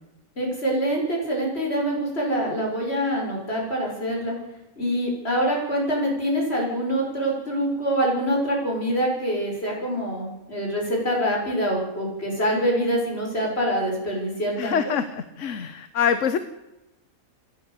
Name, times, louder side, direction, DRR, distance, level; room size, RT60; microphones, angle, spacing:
voice 1, 0.4-4.4 4.8-14.9, equal, 45° left, -1 dB, 6.7 m, -25 dB
voice 2, 14.6-16.4, left 7 dB, 65° left, 11 dB, 1.3 m, -25 dB
28.5 x 11.0 x 8.3 m, 0.97 s
omnidirectional pair, 1.4 m